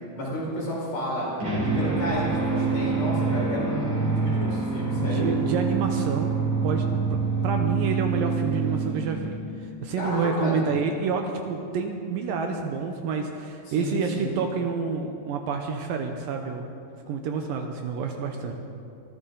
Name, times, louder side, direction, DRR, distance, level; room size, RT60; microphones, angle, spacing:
voice 1, 0.1-1.3 1.6-5.3 10.0-10.6 13.7-14.3, equal, 70° left, -6 dB, 6.6 m, -31 dB
sound 1, 1.4-9.7, right 4 dB, 45° right, 4.2 m, -26 dB
voice 2, 5.0-6.3 6.6-6.9 7.1-9.4 9.8-16.7 17.1-18.5, right 5 dB, 75° right, 4 dB, 2.3 m, -28 dB
23.0 x 14.0 x 3.9 m, 2.5 s
omnidirectional pair, 4.5 m